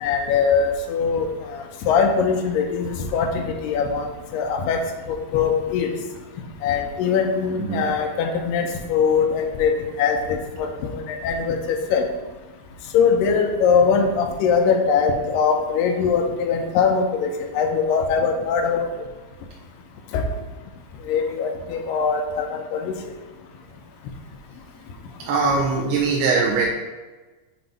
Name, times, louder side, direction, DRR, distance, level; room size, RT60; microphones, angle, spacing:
voice 1, 0.0-4.8 5.1-5.9 6.6-11.6 11.9-12.0 12.9-18.9 20.1-20.2 21.1-23.0, left 6 dB, 80° left, 3 dB, 2.0 m, -22 dB
voice 2, 25.2-26.7, right 4 dB, 90° right, -2 dB, 2.8 m, -21 dB
7.7 x 3.0 x 5.2 m, 1.2 s
omnidirectional pair, 4.5 m